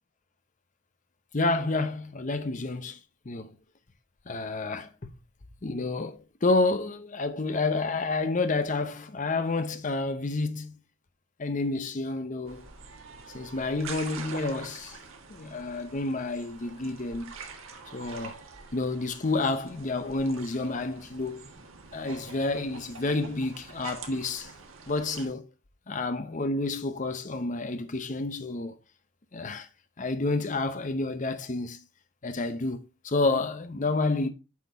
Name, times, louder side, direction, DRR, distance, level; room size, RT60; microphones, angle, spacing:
voice 1, 1.3-3.0 3.3-3.5 4.3-4.9 5.6-10.7 11.4-12.6 13.3-15.0 15.3-17.3 17.9-18.3 18.7-21.5 21.9-24.5 24.9-25.4 25.9-28.8 29.3-29.7 30.0-31.8 32.2-34.3, left 3 dB, 40° left, 0.7 m, -29 dB
sound 1, 12.5-25.3, right 4 dB, 90° right, 1.5 m, -45 dB
8.4 x 4.4 x 4.0 m
head